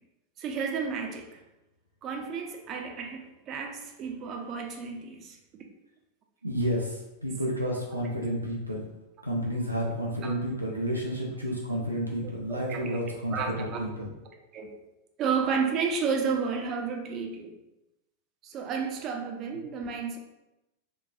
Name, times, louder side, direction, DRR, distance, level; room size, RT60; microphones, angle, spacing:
voice 1, 0.4-1.3 2.0-5.4 10.2-10.3 12.5-13.9 14.3-14.7 15.2-17.5 18.4-20.2, right 5 dB, 35° right, 3 dB, 0.5 m, -32 dB
voice 2, 6.4-8.9 9.2-14.1, equal, 85° right, -2 dB, 0.5 m, -31 dB
3.9 x 2.3 x 2.2 m, 0.96 s
figure-of-eight pair, 90°, 0 cm